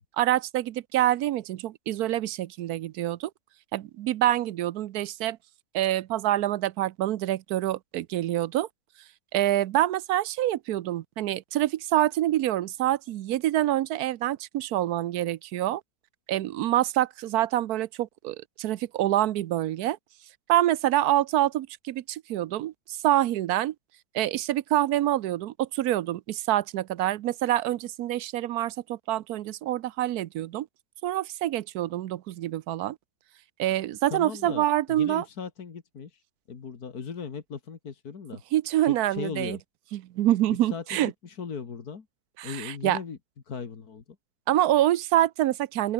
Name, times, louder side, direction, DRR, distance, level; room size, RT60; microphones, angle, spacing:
voice 1, 0.2-3.3 3.7-5.4 5.7-8.7 9.3-15.8 16.3-20.0 20.5-23.7 24.1-30.7 31.0-33.0 33.6-35.2 38.5-39.6 39.9-41.1 42.4-43.0 44.5-45.9, right 13 dB, 85° right, 1.2 m, -26 dB
voice 2, 34.1-36.2 36.5-38.4 38.8-39.6 40.5-42.1 42.4-43.2 43.5-44.0, left 6 dB, 75° left, 2.5 m, -38 dB
open air
omnidirectional pair, 1.6 m